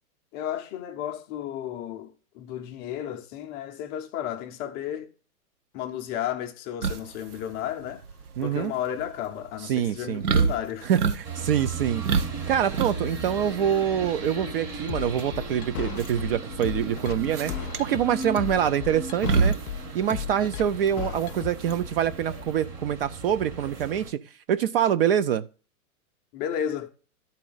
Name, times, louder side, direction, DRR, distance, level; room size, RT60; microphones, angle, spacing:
voice 1, 0.3-5.1 5.7-8.0 8.4-10.9 26.3-26.9, left 10 dB, 20° left, 0.5 m, -33 dB
sound 1, 6.8-22.4, right 5 dB, 85° right, 1.0 m, -29 dB
voice 2, 8.4-8.7 9.6-10.2 10.8-12.0 12.5-19.5 19.9-24.2 24.5-25.4, right 9 dB, 45° right, 0.4 m, -25 dB
sound 2, 11.2-24.1, right 3 dB, 25° right, 1.4 m, -37 dB
sound 3, 14.9-21.8, left 10 dB, 75° left, 0.5 m, -35 dB
12.0 x 4.2 x 3.9 m
hypercardioid pair, 125°, 44 cm